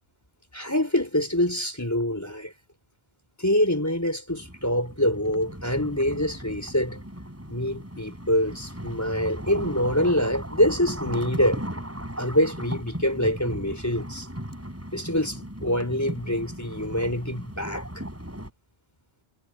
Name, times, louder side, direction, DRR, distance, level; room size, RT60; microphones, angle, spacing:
voice 1, 0.5-2.5 3.4-7.0 7.5-11.6 12.2-14.3 14.9-17.9, left 1 dB, 15° left, 4.4 m, -25 dB
sound 1, 4.3-18.5, equal, 15° right, 4.1 m, -37 dB
omnidirectional pair, 1.1 m